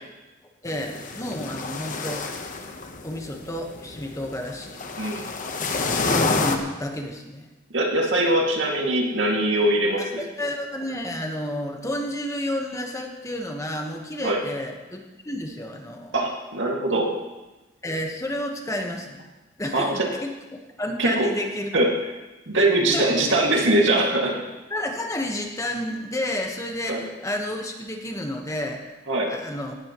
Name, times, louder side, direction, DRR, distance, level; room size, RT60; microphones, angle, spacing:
voice 1, 0.6-2.3 3.0-4.8 6.0-7.5 10.0-16.1 17.8-19.2 19.6-20.3 20.8-21.7 22.5-23.2 24.7-28.9 29.3-29.7, left 1 dB, 15° left, 2 dB, 1.3 m, -31 dB
sound 1, 0.7-6.6, left 3 dB, 45° left, 1.1 m, -29 dB
voice 2, 7.7-10.2 14.2-14.4 16.1-17.1 19.7-20.1 21.0-21.3 21.7-21.9 22.5-24.3 26.9-27.0 29.1-29.3, right 1 dB, 75° right, 0 dB, 2.3 m, -22 dB
17.5 x 12.5 x 3.1 m, 1.1 s
head